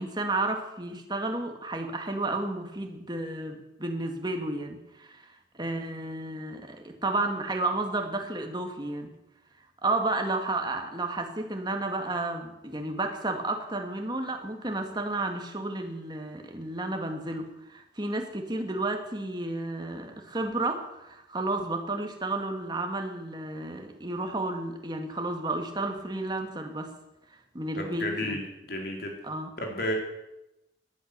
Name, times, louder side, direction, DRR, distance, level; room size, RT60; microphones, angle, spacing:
voice 1, 0.0-9.1 9.8-26.9 27.5-28.4 29.2-29.5, right 2 dB, 25° right, 4 dB, 2.0 m, -32 dB
voice 2, 27.8-29.1 29.6-29.9, left 1 dB, 55° left, 1 dB, 4.1 m, -32 dB
18.0 x 11.5 x 6.8 m, 0.92 s
head